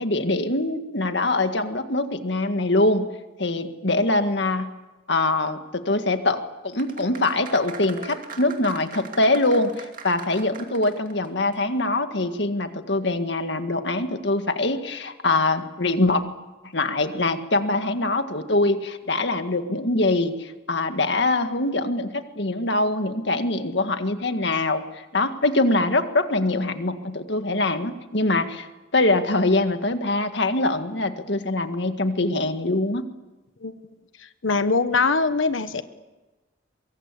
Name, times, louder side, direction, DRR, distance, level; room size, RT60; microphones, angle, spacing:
voice 1, 0.0-3.1 3.4-4.7 5.1-16.2 16.7-28.7 28.9-33.0, left 2 dB, 65° left, 8 dB, 1.9 m, -23 dB
sound 1, 6.7-11.3 11.5-11.6, right 5 dB, 45° right, 2.6 m, -40 dB
voice 2, 34.4-35.8, left 4 dB, 85° left, 10 dB, 1.2 m, -22 dB
23.5 x 23.0 x 8.4 m, 1.1 s
head